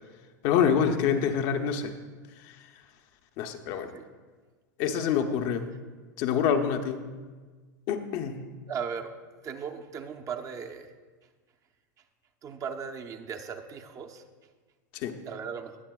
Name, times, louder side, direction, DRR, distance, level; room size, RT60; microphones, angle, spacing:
voice 1, 0.4-1.9 3.4-3.9 4.8-5.7 6.2-7.0 7.9-8.4 15.0-15.2, left 7 dB, 50° left, 6 dB, 0.8 m, -26 dB
voice 2, 8.7-9.1 9.4-10.9 12.4-14.2 15.2-15.8, right 6 dB, 30° right, 5 dB, 0.7 m, -37 dB
19.5 x 7.2 x 2.4 m, 1.4 s
hypercardioid pair, 110°, 10 cm